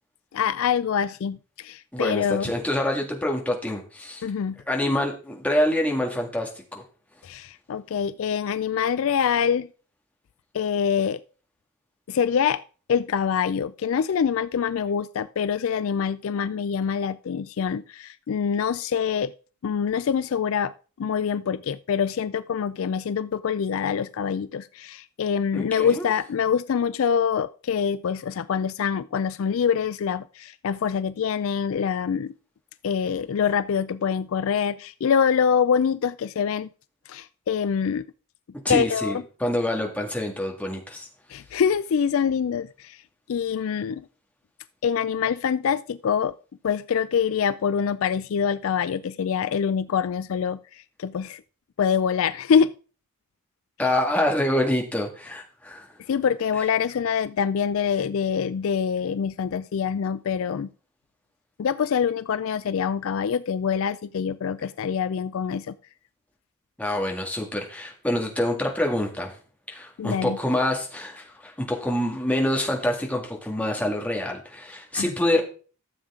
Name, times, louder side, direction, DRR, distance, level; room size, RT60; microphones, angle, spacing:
voice 1, 0.3-2.5 4.2-4.6 7.2-9.7 10.5-11.2 12.1-12.6 12.9-19.3 19.6-20.7 21.0-32.3 32.8-36.7 37.1-38.0 38.7-39.2 41.3-43.0 43.3-44.0 44.8-46.3 46.6-50.6 51.0-51.4 51.8-52.7 56.1-60.7 61.6-65.7 70.0-70.4 74.9-75.1, left 7 dB, 60° left, 15 dB, 0.3 m, -25 dB
voice 2, 1.9-4.2 4.7-6.8 25.5-26.1 38.6-41.1 53.8-55.9 66.8-69.4 69.7-75.4, left 1 dB, 5° left, 0 dB, 1.9 m, -26 dB
13.0 x 7.2 x 3.7 m, 0.39 s
head